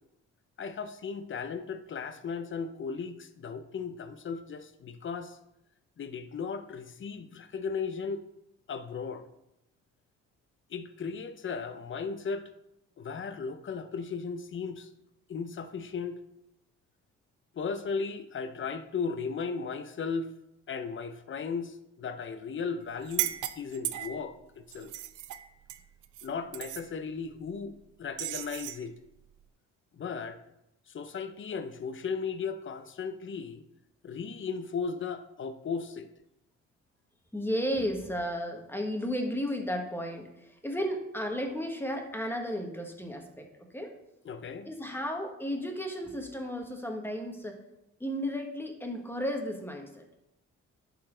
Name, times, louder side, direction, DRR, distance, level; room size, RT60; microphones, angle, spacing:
voice 1, 0.6-5.4 6.0-8.2 8.7-9.2 10.7-12.5 13.0-14.9 15.3-16.2 17.5-20.3 20.7-24.3 24.7-24.9 26.2-28.9 29.9-30.4 30.9-33.6 34.0-36.1 44.2-44.7, left 5 dB, 40° left, 0.7 m, -36 dB
sound 1, 23.0-24.3 24.7-26.3 26.5-26.9 28.2-28.8, right 13 dB, 85° right, 0.6 m, -35 dB
voice 2, 37.3-43.5 43.7-43.9 44.6-47.6 48.0-50.0, equal, 5° left, 1.5 m, -33 dB
11.5 x 4.3 x 3.9 m
cardioid pair, 90°, 30 cm